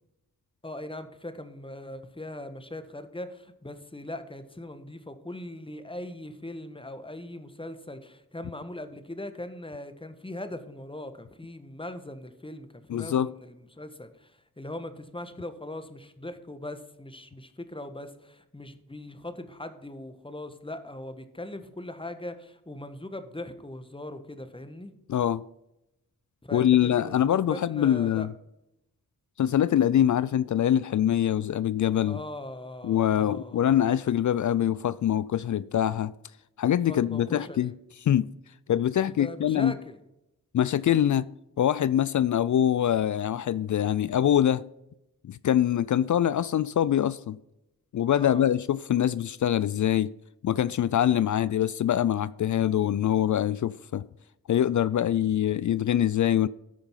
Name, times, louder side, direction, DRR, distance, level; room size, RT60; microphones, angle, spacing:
voice 1, 0.6-24.9 26.4-28.3 32.1-33.7 36.9-37.8 39.1-40.0 48.2-48.5, left 1 dB, 15° left, 1.4 m, -40 dB
voice 2, 12.9-13.3 25.1-25.4 26.5-28.3 29.4-32.2 32.8-36.1 36.6-37.7 38.1-38.3 38.7-39.8 40.5-41.3 41.6-44.6 45.2-47.4 47.9-50.1 50.4-54.0 54.5-56.5, left 10 dB, 55° left, 0.4 m, -24 dB
13.5 x 5.2 x 5.7 m
cardioid pair, 55°, 36 cm